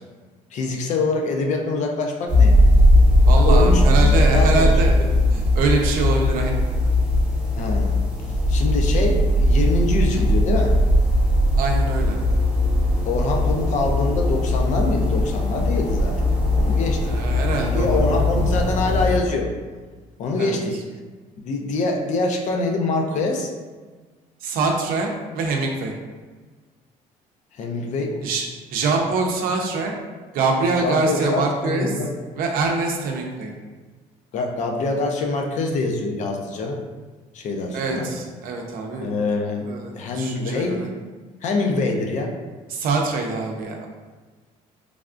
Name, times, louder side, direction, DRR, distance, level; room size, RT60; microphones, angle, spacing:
voice 1, 0.5-2.6 3.3-4.7 7.6-7.9 8.5-10.7 13.1-16.2 16.6-17.1 17.5-19.5 20.2-20.8 21.4-23.5 27.6-28.2 30.8-32.1 34.3-36.8 37.3-38.1 39.0-40.8 41.4-42.3, left 3 dB, 55° left, 2 dB, 0.5 m, -24 dB
sound 1, 2.3-19.2, left 1 dB, 10° right, 0.7 m, -18 dB
voice 2, 3.3-5.0 5.3-6.6 11.6-12.2 17.1-18.2 20.4-20.6 24.4-25.9 28.2-28.4 28.7-29.9 30.3-32.0 32.3-33.5 37.7-39.1 39.7-40.9 42.7-43.9, right 3 dB, 70° right, 2 dB, 0.5 m, -24 dB
3.3 x 2.4 x 2.4 m, 1.4 s
cardioid pair, 120°, 15 cm